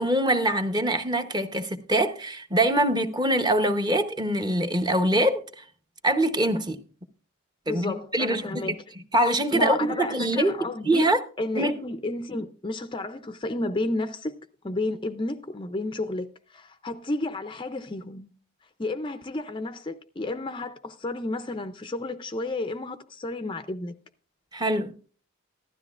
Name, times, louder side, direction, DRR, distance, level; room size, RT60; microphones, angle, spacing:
voice 1, 0.0-5.6 6.0-6.8 7.7-8.4 9.1-10.5 10.9-11.2 11.6-11.7 24.5-24.9, right 1 dB, 20° right, 0.8 m, -24 dB
voice 2, 7.7-8.8 9.5-11.1 11.4-14.4 14.6-18.3 18.8-23.9, left 2 dB, 20° left, 0.4 m, -32 dB
15.5 x 12.5 x 2.4 m
head